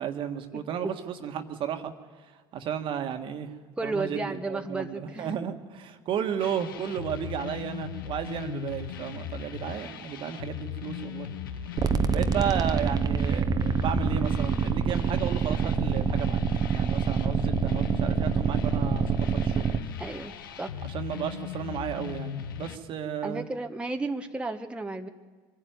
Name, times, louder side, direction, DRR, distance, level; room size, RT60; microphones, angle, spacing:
voice 1, 0.0-1.9 2.5-3.5 3.8-11.3 12.1-16.4 16.7-19.7 20.8-23.4, right 8 dB, 50° right, 7 dB, 1.6 m, -33 dB
voice 2, 3.8-5.3 20.0-20.3 20.6-20.8 23.2-25.1, right 3 dB, 10° right, 4 dB, 1.2 m, -33 dB
sound 1, 6.4-22.8, left 9 dB, 80° left, 0.9 m, -38 dB
sound 2, 11.8-19.8, right 6 dB, 35° right, 1.0 m, -26 dB
23.5 x 12.0 x 9.4 m, 1.4 s
hypercardioid pair, 75°, 11 cm